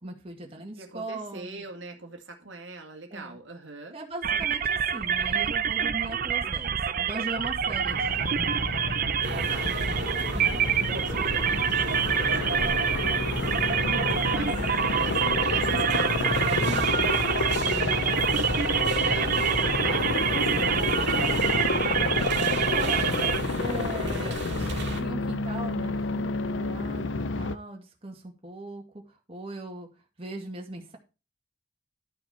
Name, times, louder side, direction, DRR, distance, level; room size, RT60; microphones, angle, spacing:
voice 1, 0.0-1.6 3.1-3.4 3.9-8.6 22.6-28.8 29.3-29.9 30.2-31.0, right 2 dB, 30° right, 2.1 m, -39 dB
voice 2, 0.7-4.0 9.5-9.7 10.9-12.7 13.8-21.6, right 3 dB, 85° right, 2.1 m, -42 dB
sound 1, 4.2-23.4, right 8 dB, 50° right, 0.6 m, -27 dB
Aircraft, 7.7-27.6, left 3 dB, 80° left, 0.7 m, -30 dB
sound 2, 9.2-25.0, right 1 dB, 65° right, 2.3 m, -35 dB
12.0 x 6.1 x 4.4 m
head